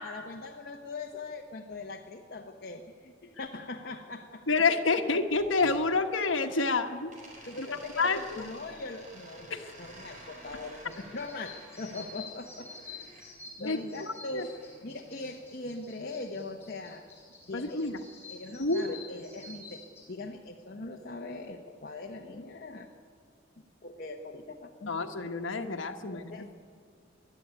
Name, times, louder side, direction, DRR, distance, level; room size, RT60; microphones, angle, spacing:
voice 1, 0.0-4.4 7.5-12.7 13.6-14.5 14.8-17.1 17.5-22.9 23.8-25.3 26.1-26.5, left 2 dB, 50° left, 2 dB, 1.1 m, -41 dB
voice 2, 4.5-7.1 7.6-7.7 8.0-8.4 9.5-9.7 13.6-13.8 14.3-14.5 17.5-18.0 18.6-19.0 24.9-26.5, left 3 dB, 85° left, 5 dB, 1.3 m, -28 dB
sound 1, 5.3-6.7 7.1-13.3 14.3-15.5, right 1 dB, 40° right, 5.6 m, -52 dB
sound 2, 10.8-20.0, left 3 dB, 15° left, 5.6 m, -49 dB
22.0 x 12.0 x 9.6 m, 2.2 s
head